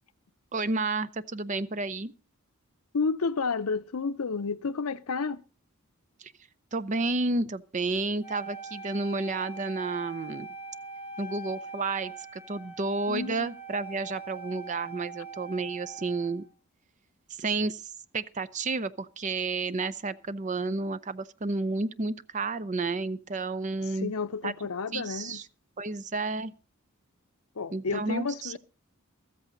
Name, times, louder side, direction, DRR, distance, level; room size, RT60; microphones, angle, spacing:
voice 1, 0.5-2.1 6.2-6.3 6.7-10.5 11.2-16.4 17.4-17.8 18.1-24.1 24.4-24.5 24.9-25.4 25.8-26.5 27.7-28.6, right 3 dB, 35° right, 0.6 m, -31 dB
voice 2, 2.9-5.4 13.1-13.5 23.9-25.4 27.6-28.6, left 4 dB, 80° left, 0.7 m, -31 dB
Wind instrument woodwind instrument, 8.2-16.5, right 3 dB, 10° right, 2.9 m, -43 dB
14.0 x 14.0 x 3.9 m
head